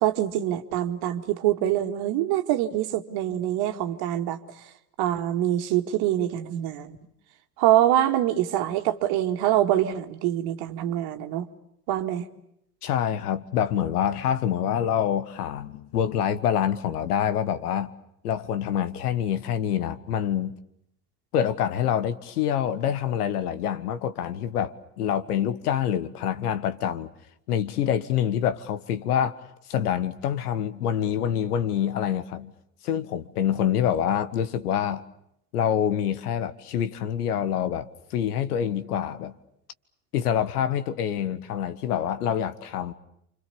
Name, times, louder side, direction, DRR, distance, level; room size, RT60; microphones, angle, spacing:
voice 1, 0.0-4.4 5.0-7.0 7.6-11.5 11.9-12.2, right 12 dB, 50° right, 2.3 m, -24 dB
voice 2, 12.8-17.9 18.2-20.5 21.3-27.1 27.5-29.4 29.7-32.5 32.8-35.0 35.5-39.3 40.1-42.9, left 9 dB, 70° left, 1.6 m, -26 dB
29.5 x 26.0 x 7.1 m
figure-of-eight pair, 75°, 48 cm